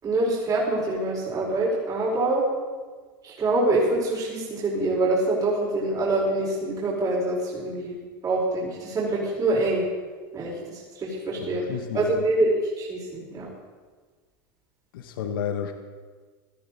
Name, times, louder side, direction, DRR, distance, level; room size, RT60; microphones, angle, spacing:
voice 1, 0.0-2.4 3.2-8.0 8.2-9.8 10.3-11.6 11.9-13.5, right 2 dB, 30° right, -5 dB, 5.1 m, -25 dB
voice 2, 11.4-12.2 14.9-15.7, left 8 dB, 75° left, 6 dB, 1.4 m, -31 dB
17.5 x 13.5 x 4.2 m, 1.5 s
hypercardioid pair, 95°, 12 cm